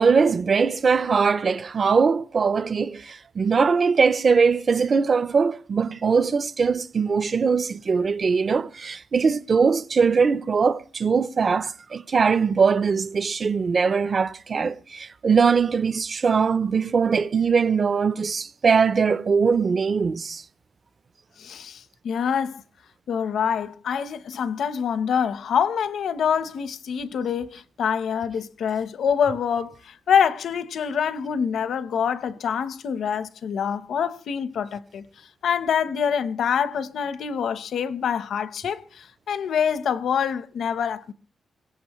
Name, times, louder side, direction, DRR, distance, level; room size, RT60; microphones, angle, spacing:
voice 1, 0.0-20.4, right 5 dB, 35° right, 0.7 m, -21 dB
voice 2, 21.4-22.6 23.1-35.1 35.4-41.1, left 7 dB, 70° left, 1.0 m, -25 dB
22.5 x 18.5 x 3.2 m
wide cardioid pair, 165°, 0 cm